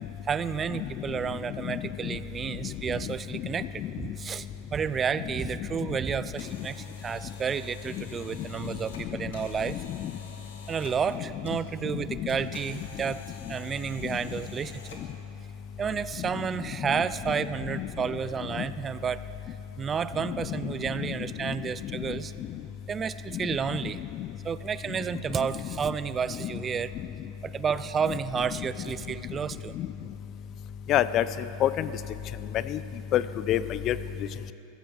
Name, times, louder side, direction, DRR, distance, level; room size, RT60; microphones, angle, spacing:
voice 1, 0.2-4.5 4.7-9.8 10.7-14.8 15.8-19.2 19.5-22.3 22.9-24.0 24.4-26.9 27.4-29.7, right 7 dB, 25° right, 15 dB, 0.5 m, -31 dB
voice 2, 1.6-2.2 3.1-3.2 3.8-4.0 9.7-10.1 11.5-11.6 11.9-12.0 14.1-14.2 16.2-16.3 16.8-17.4 17.7-17.9 18.5-18.7 20.2-20.6 21.4-21.5 21.9-22.0 23.3-23.4 24.1-24.3 25.4-25.5 26.4-26.5 28.1-28.2 28.6-28.7 29.7-29.9 30.9-31.3 31.6-31.9 32.5-32.8 33.1-34.0, left 12 dB, 40° left, 15 dB, 0.6 m, -29 dB
sound 1, 6.1-15.3, left 4 dB, 90° left, 2.2 m, -49 dB
15.0 x 14.5 x 6.5 m, 2.9 s
hypercardioid pair, 115°, 0 cm